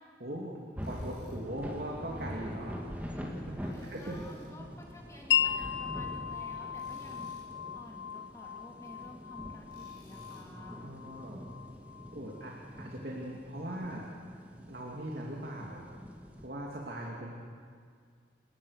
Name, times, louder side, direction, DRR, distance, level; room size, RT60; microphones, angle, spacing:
voice 1, 0.2-0.6 0.9-2.8 3.1-4.2 10.8-11.4 12.1-14.1 14.7-15.9 16.4-17.3, right 1 dB, 60° right, -2 dB, 2.7 m, -40 dB
sound 1, 0.7-16.5, equal, 10° right, 2.2 m, -45 dB
Tools, 0.8-1.4 3.7-4.6 6.7-7.5 9.7-10.5, left 2 dB, 60° left, 7.2 m, -62 dB
voice 2, 3.7-7.3 7.7-10.8, left 1 dB, 15° left, -2 dB, 3.0 m, -52 dB
Wind chime, 5.3-12.9, left 8 dB, 85° left, 0.6 m, -36 dB
29.0 x 19.0 x 6.6 m, 2.1 s
head